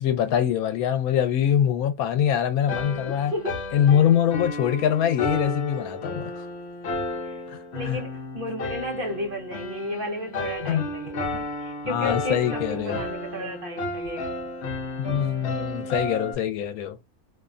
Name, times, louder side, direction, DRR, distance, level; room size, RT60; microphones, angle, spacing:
voice 1, 0.0-3.3 3.7-6.3 7.8-8.0 10.6-10.9 11.8-13.0 15.0-17.0, left 9 dB, 85° left, 1.1 m, -23 dB
sound 1, 2.7-16.3, left 2 dB, 55° left, 0.9 m, -33 dB
voice 2, 3.3-3.6 7.2-7.4 7.7-14.3, left 1 dB, 50° right, 0.8 m, -33 dB
2.7 x 2.1 x 2.4 m
omnidirectional pair, 1.5 m